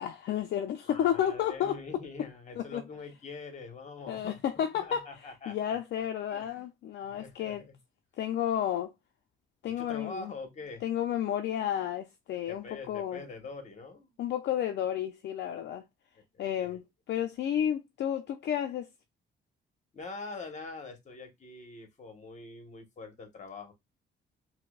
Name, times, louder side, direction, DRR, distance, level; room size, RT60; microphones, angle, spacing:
voice 1, 0.0-1.8 2.6-2.8 4.1-7.6 8.2-8.9 9.6-10.3 10.8-13.2 14.2-15.8 16.4-18.9, left 10 dB, 60° left, 0.4 m, -32 dB
voice 2, 0.8-5.8 6.3-6.6 7.0-7.8 9.8-10.8 12.5-14.1 16.6-16.8 19.9-23.7, left 3 dB, 35° left, 1.0 m, -44 dB
4.4 x 2.1 x 2.3 m
cardioid pair, 90°, 20 cm